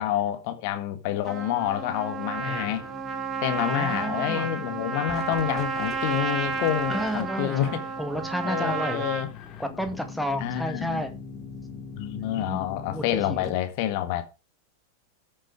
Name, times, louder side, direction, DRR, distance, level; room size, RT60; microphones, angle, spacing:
voice 1, 0.0-2.9 3.4-7.8 8.4-9.3 10.4-11.0 12.0-14.2, left 12 dB, 45° left, 1.7 m, -28 dB
Trumpet, 1.3-9.3, right 5 dB, 20° right, 1.5 m, -32 dB
sound 1, 2.3-13.5, left 5 dB, 30° left, 2.7 m, -43 dB
voice 2, 2.4-2.9 3.6-4.6 6.9-9.1 9.6-11.2 12.2-13.6, equal, ahead, 1.9 m, -32 dB
13.5 x 6.6 x 4.8 m
figure-of-eight pair, 90°, 0 cm